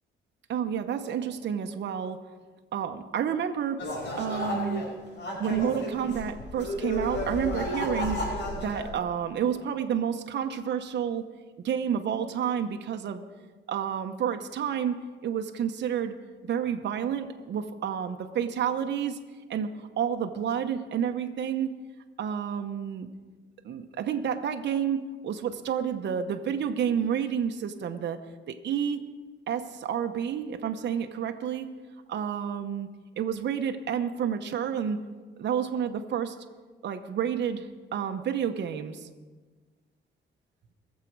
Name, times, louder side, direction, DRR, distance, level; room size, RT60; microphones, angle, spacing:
voice 1, 0.5-2.2 2.7-3.8 4.2-4.8 5.4-11.2 11.6-13.2 13.7-15.0 15.2-16.1 16.4-19.2 19.5-21.7 22.2-23.1 23.6-28.2 28.5-29.0 29.5-31.7 32.1-32.9 33.2-35.0 35.4-36.4 36.8-39.1, right 8 dB, 60° right, 5 dB, 1.0 m, -30 dB
sound 1, 3.8-4.9 5.1-8.9, equal, 65° left, 5.2 m, -32 dB
22.5 x 7.5 x 4.7 m, 1.3 s
cardioid pair, 90°, 20 cm